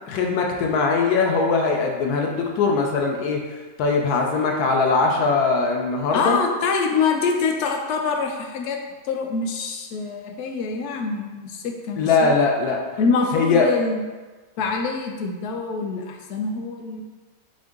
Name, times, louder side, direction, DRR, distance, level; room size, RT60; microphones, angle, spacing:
voice 1, 0.1-6.4 12.0-12.8 13.3-13.7, left 4 dB, 90° left, 1 dB, 1.2 m, -21 dB
voice 2, 6.1-8.8 9.0-12.3 13.0-14.0 14.6-17.0, left 4 dB, 65° left, 2 dB, 0.7 m, -25 dB
4.5 x 2.6 x 3.6 m, 1.3 s
omnidirectional pair, 1.6 m